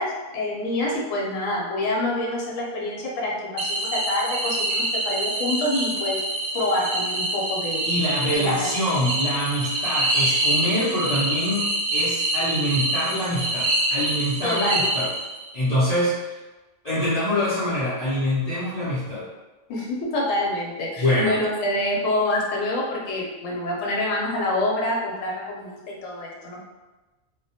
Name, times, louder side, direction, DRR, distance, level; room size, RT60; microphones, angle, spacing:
voice 1, 0.0-6.2 6.5-7.8 8.3-8.4 14.4-14.9 19.7-26.6, left 1 dB, 80° left, -2 dB, 1.0 m, -26 dB
sound 1, 3.6-15.5, right 1 dB, 70° right, 0.8 m, -26 dB
voice 2, 7.8-11.6 11.9-15.1 15.5-16.4 16.8-19.2 21.0-21.4, equal, 45° left, -12 dB, 0.5 m, -25 dB
2.2 x 2.1 x 2.7 m, 1.1 s
omnidirectional pair, 1.3 m